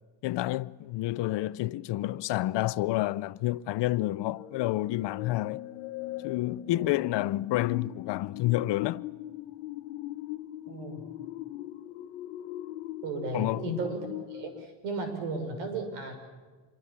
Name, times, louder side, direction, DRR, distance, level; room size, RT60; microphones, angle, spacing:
voice 1, 0.2-5.6 6.2-9.0 13.3-13.8, left 16 dB, 60° left, 0.8 m, -29 dB
sound 1, 4.0-14.7, left 15 dB, 80° left, 1.4 m, -40 dB
voice 2, 10.7-11.0 13.0-16.1, right 3 dB, 80° right, 6.2 m, -35 dB
26.5 x 23.0 x 7.2 m
supercardioid pair, 100°, 47 cm